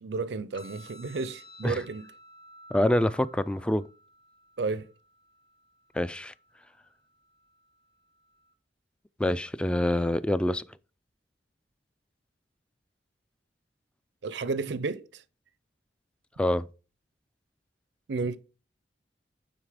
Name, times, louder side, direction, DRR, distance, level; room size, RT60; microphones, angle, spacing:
voice 1, 0.0-2.1 4.6-4.9 14.2-15.2 18.1-18.4, right 4 dB, 75° right, 0.5 m, -32 dB
sound 1, 0.5-8.5, equal, 25° left, 1.7 m, -54 dB
voice 2, 2.7-3.8 5.9-6.3 9.2-10.6 16.4-16.6, left 1 dB, 5° left, 0.3 m, -26 dB
9.2 x 4.0 x 4.8 m
head